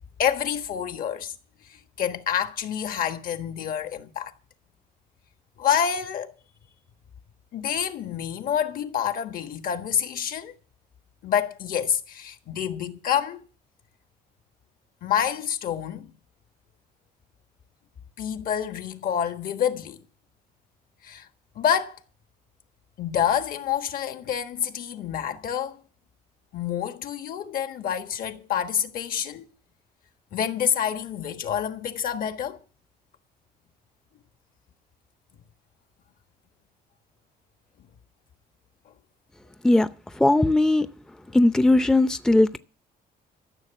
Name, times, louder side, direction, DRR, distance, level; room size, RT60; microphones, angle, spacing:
voice 1, 0.2-1.3 1.7-4.3 5.6-6.3 7.5-10.6 11.2-13.4 15.0-16.1 18.2-20.0 21.0-21.3 21.5-22.0 23.0-25.8 26.5-29.5 30.3-32.6, left 9 dB, 55° left, 1.4 m, -27 dB
voice 2, 40.1-40.9 41.3-42.6, left 2 dB, 5° left, 0.6 m, -19 dB
14.0 x 6.8 x 9.9 m
cardioid pair, 110°, 17 cm